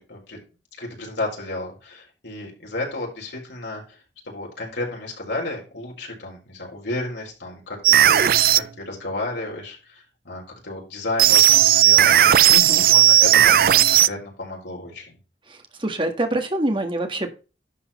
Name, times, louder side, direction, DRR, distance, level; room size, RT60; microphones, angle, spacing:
voice 1, 0.1-0.4 0.8-4.0 4.2-15.2, left 2 dB, 85° left, -1 dB, 4.5 m, -32 dB
sound 1, 7.8-8.6 11.2-14.1, right 12 dB, 55° right, 0.4 m, -15 dB
voice 2, 12.5-12.8 15.5-17.3, right 1 dB, 30° right, 5 dB, 1.7 m, -26 dB
11.5 x 5.4 x 4.3 m, 0.32 s
head